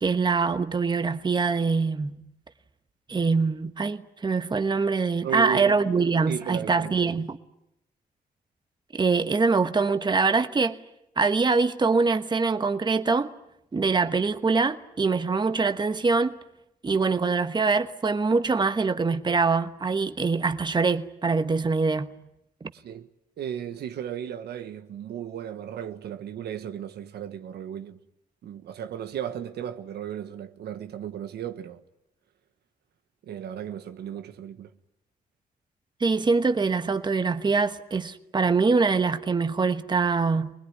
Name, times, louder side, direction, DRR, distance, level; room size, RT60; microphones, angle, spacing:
voice 1, 0.0-2.2 3.1-7.4 8.9-10.8 11.2-13.3 13.7-16.4 16.8-22.2 36.0-40.5, right 4 dB, 25° right, 1.2 m, -24 dB
voice 2, 5.2-5.8 6.3-7.2 22.7-23.1 23.4-28.0 28.4-31.8 33.2-34.7, right 9 dB, 85° right, 1.3 m, -35 dB
25.0 x 20.5 x 9.8 m
cardioid pair, 100°, 16 cm